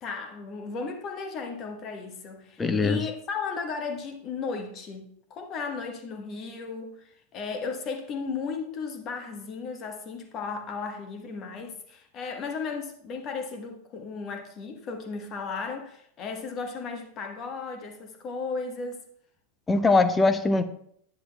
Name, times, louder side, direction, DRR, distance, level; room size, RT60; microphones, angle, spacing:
voice 1, 0.0-19.0, left 4 dB, 30° left, 1.4 m, -35 dB
voice 2, 2.6-3.0 19.7-20.6, left 3 dB, 15° left, 0.7 m, -21 dB
10.5 x 9.8 x 2.4 m
figure-of-eight pair, 90°, 0 cm